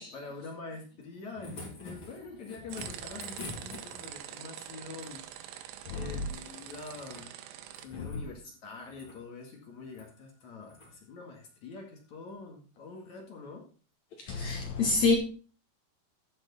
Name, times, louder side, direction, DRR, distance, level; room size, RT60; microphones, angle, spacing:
voice 1, 0.0-5.2 5.9-7.3 7.8-13.6, left 4 dB, 50° left, 2.7 m, -45 dB
sound 1, 1.0-4.3 6.3-7.3 7.6-8.3 8.8-9.2 9.9-10.1 10.7-10.9 12.3-12.4, left 2 dB, 30° left, 3.5 m, -46 dB
sound 2, 2.7-7.9, right 11 dB, 80° right, 3.0 m, -44 dB
voice 2, 5.9-6.3 7.9-8.1 14.2-15.2, left 3 dB, 80° left, 1.6 m, -28 dB
13.5 x 6.4 x 4.2 m
omnidirectional pair, 5.0 m